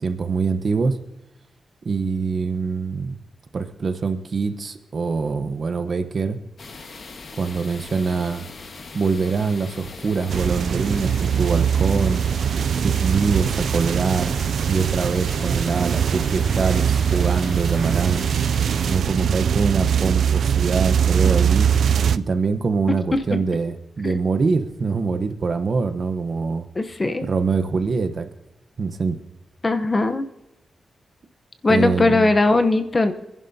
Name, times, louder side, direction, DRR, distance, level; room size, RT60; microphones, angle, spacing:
voice 1, 0.0-1.0 1.8-3.2 3.5-6.4 7.4-8.5 8.9-12.2 12.8-14.4 14.7-18.3 18.8-21.7 22.1-26.7 27.2-28.3 28.8-29.2 31.7-32.3, right 4 dB, 50° right, 8 dB, 0.9 m, -24 dB
sound 1, 6.6-19.0, left 3 dB, 55° left, 1.5 m, -40 dB
sound 2, 10.3-22.2, right 8 dB, 80° right, 0.3 m, -21 dB
voice 2, 26.8-27.3 29.6-30.3 31.6-33.1, left 2 dB, 25° left, 8 dB, 0.9 m, -19 dB
26.0 x 11.0 x 2.8 m, 0.96 s
wide cardioid pair, 125°, 0 cm